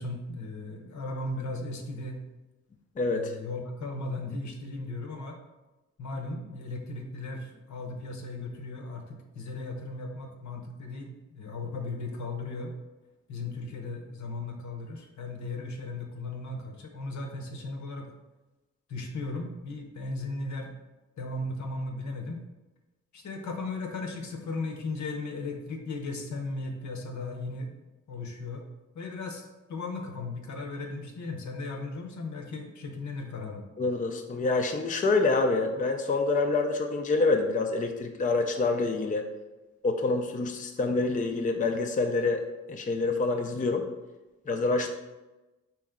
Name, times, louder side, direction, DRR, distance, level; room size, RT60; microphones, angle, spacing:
voice 1, 0.0-2.2 3.1-5.4 6.0-12.7 13.3-18.1 18.9-20.7 21.2-22.4 23.1-27.7 28.1-28.6 28.9-33.6, left 2 dB, 70° left, 3 dB, 0.8 m, -36 dB
voice 2, 3.0-3.3 33.8-39.3 39.8-42.4 42.7-43.9 44.5-44.9, left 3 dB, 25° left, 4 dB, 0.4 m, -26 dB
4.5 x 3.0 x 3.6 m, 1.1 s
cardioid pair, 65°, 30 cm